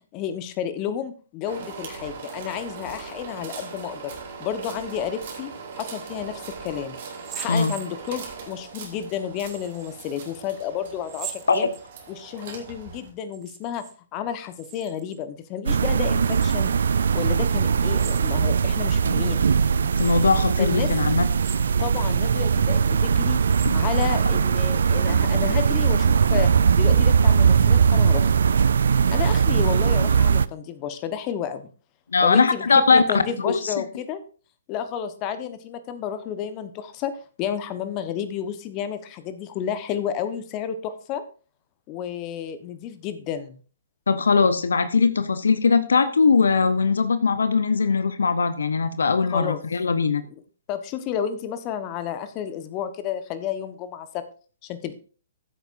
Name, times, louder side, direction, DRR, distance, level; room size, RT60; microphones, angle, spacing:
voice 1, 0.1-4.1 4.4-5.5 5.7-7.0 7.3-11.7 12.1-13.8 14.1-16.7 17.1-19.4 20.6-20.9 21.8-23.4 23.7-26.5 26.8-28.3 29.1-31.7 32.2-32.6 32.9-34.2 34.7-41.2 41.9-43.6 49.3-49.6 50.7-54.2 54.6-54.9, left 9 dB, 30° left, 11 dB, 1.1 m, -31 dB
sound 1, 1.4-13.1, right 5 dB, 50° right, 3.3 m, -40 dB
sound 2, 7.1-8.4 9.4-10.0 11.0-12.2 13.2-14.0 14.2-15.2 16.2-16.8 17.9-18.7 19.2-19.3 19.9-20.4 21.2-22.0 22.5-22.6 23.3-24.3, right 11 dB, 25° right, 1.0 m, -41 dB
sound 3, 15.7-30.5, right 6 dB, 65° right, 0.4 m, -20 dB
voice 2, 20.0-21.3 23.6-23.8 32.1-33.7 44.1-50.2, left 4 dB, 70° left, 13 dB, 0.8 m, -20 dB
14.5 x 8.1 x 2.6 m, 0.39 s
figure-of-eight pair, 125°, 0 cm